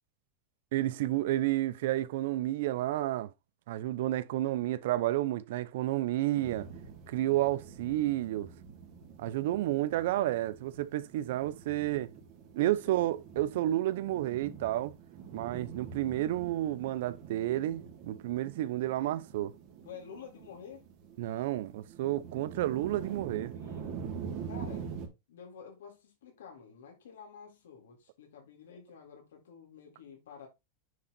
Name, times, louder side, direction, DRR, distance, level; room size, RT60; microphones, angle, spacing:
voice 1, 0.7-3.3 3.7-6.7 7.1-8.5 9.2-12.1 12.6-15.0 15.3-19.5 21.2-23.5, right 14 dB, 70° right, 0.7 m, -31 dB
sound 1, 6.4-25.1, right 6 dB, 45° right, 2.7 m, -45 dB
voice 2, 12.6-13.1 19.8-20.9 23.5-24.0 24.4-24.9 25.3-30.5, left 7 dB, 90° left, 3.8 m, -50 dB
9.5 x 3.9 x 4.2 m
supercardioid pair, 140°, 0 cm